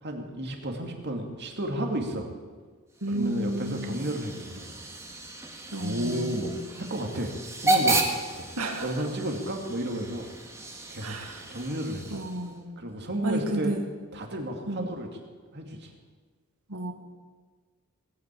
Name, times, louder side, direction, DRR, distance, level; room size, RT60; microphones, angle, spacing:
voice 1, 0.0-2.3 3.1-4.8 5.8-7.3 7.6-8.0 8.3-8.5 8.8-10.3 10.9-11.1 11.5-12.2 12.8-13.8 14.1-15.1 15.5-15.9, right 1 dB, 50° right, 2 dB, 2.4 m, -32 dB
Hiss / Train / Alarm, 2.9-12.6, right 2 dB, 15° right, 1.8 m, -33 dB
voice 2, 3.0-4.0 5.7-6.7 8.6-8.9 11.0-11.4 12.1-12.8 13.2-13.8 14.7-15.0 16.7-16.9, right 1 dB, 85° right, 4 dB, 2.0 m, -32 dB
18.5 x 9.4 x 8.4 m, 1.5 s
head